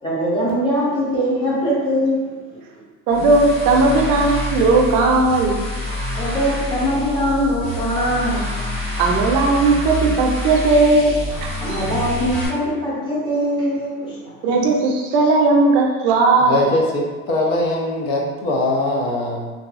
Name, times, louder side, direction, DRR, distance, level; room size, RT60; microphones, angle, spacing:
voice 1, 0.0-2.8 6.2-8.6 11.6-14.5, equal, 15° left, -7 dB, 0.5 m, -22 dB
sound 1, 3.1-12.5, left 1 dB, 35° left, 1.4 m, -27 dB
voice 2, 3.1-5.6 9.0-11.2 11.7-11.8 14.4-16.6, right 3 dB, 60° right, 1 dB, 0.5 m, -16 dB
voice 3, 16.4-19.5, left 1 dB, 80° left, -1 dB, 0.7 m, -21 dB
2.6 x 2.3 x 2.4 m, 1.3 s
cardioid pair, 170°, 35 cm